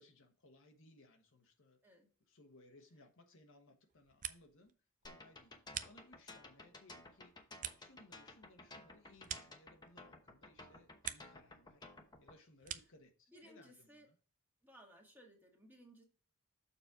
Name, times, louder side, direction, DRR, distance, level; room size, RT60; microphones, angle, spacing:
voice 1, 0.0-1.8 2.3-4.7 5.0-5.5 5.8-7.3 7.8-11.9 12.2-14.1, left 2 dB, 65° left, 4 dB, 1.2 m, -64 dB
sound 1, 3.9-4.7 5.0-6.5 6.9-10.2 10.5-11.5 11.8-13.1, right 10 dB, 35° right, 0.5 m, -49 dB
sound 2, 5.1-12.4, left 2 dB, 20° left, 1.0 m, -55 dB
voice 2, 13.3-14.1 14.6-16.0, right 1 dB, 10° right, 0 dB, 1.7 m, -60 dB
6.9 x 4.2 x 4.7 m, 0.38 s
head